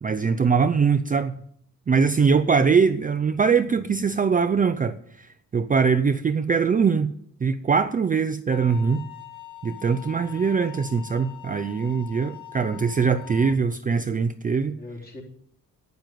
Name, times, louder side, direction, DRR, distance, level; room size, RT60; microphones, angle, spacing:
voice 1, 0.0-1.3 1.9-7.1 7.4-9.0 9.6-14.7, right 5 dB, 25° right, 0.5 m, -22 dB
sound 1, 8.5-13.5, left 13 dB, 60° left, 1.8 m, -43 dB
voice 2, 10.1-10.4 14.2-15.2, left 2 dB, 30° left, 3.5 m, -44 dB
12.0 x 9.3 x 9.1 m
wide cardioid pair, 155°, 34 cm